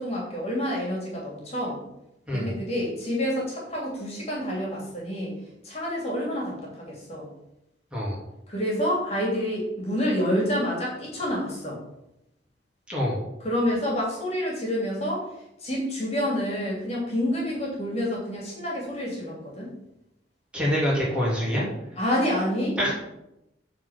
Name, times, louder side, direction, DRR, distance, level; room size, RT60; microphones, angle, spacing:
voice 1, 0.0-1.8 2.3-5.3 5.6-7.3 8.5-11.8 13.4-15.3 15.6-19.7 22.0-22.9, equal, 35° left, -3 dB, 2.8 m, -28 dB
voice 2, 20.5-21.6 22.8-22.9, equal, 5° right, -6 dB, 3.0 m, -25 dB
8.7 x 4.5 x 7.3 m, 0.87 s
head